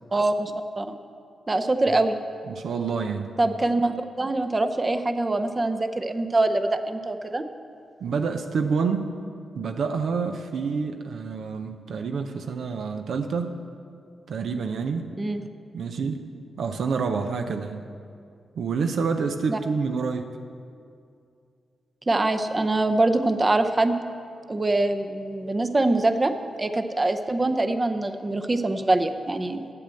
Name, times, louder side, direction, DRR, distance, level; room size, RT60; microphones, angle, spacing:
voice 1, 0.1-1.0 1.5-2.2 3.4-7.4 15.2-15.4 19.5-19.6 22.1-23.9 24.5-26.3 26.6-29.7, right 2 dB, 30° right, 8 dB, 0.7 m, -24 dB
voice 2, 2.5-3.4 8.0-9.1 9.5-13.6 14.3-15.1 15.7-16.3 16.6-17.8 18.6-20.3, right 5 dB, 75° right, 6 dB, 0.5 m, -28 dB
8.5 x 7.7 x 7.7 m, 2.4 s
supercardioid pair, 50°, 0 cm